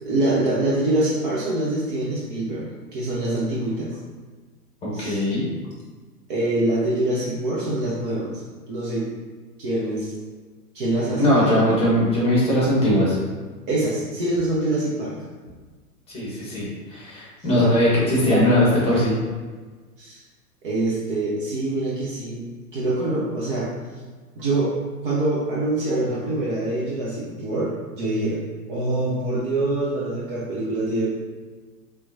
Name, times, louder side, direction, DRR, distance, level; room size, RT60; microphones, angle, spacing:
voice 1, 0.0-4.0 4.9-5.2 6.3-8.4 8.7-9.0 9.6-10.1 10.7-11.5 13.7-15.1 20.0-20.2 20.6-22.4 22.7-23.7 24.4-24.7 25.0-28.4 28.7-31.1, right 2 dB, 35° right, -6 dB, 0.7 m, -25 dB
voice 2, 4.8-5.4 11.2-13.2 16.1-19.1, left 1 dB, 10° left, -6 dB, 1.3 m, -20 dB
4.5 x 3.4 x 2.6 m, 1.4 s
figure-of-eight pair, 110°, 47 cm